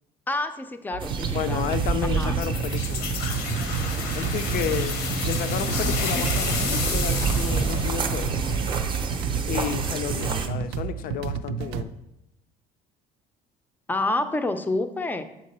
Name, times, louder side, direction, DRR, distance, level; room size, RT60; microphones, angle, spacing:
voice 1, 0.3-1.7 2.0-2.3 13.9-15.2, left 2 dB, 10° left, 9 dB, 0.5 m, -28 dB
sound 1, 0.9-11.8, right 7 dB, 85° right, 0.4 m, -31 dB
sound 2, 1.0-10.5, right 5 dB, 30° right, 0.6 m, -29 dB
voice 2, 1.3-3.1 4.1-8.4 9.5-11.9, left 8 dB, 55° left, 11 dB, 0.5 m, -31 dB
sound 3, 2.4-9.0, left 5 dB, 70° left, 0.9 m, -31 dB
7.5 x 4.6 x 4.1 m, 0.89 s
cardioid pair, 130°, 17 cm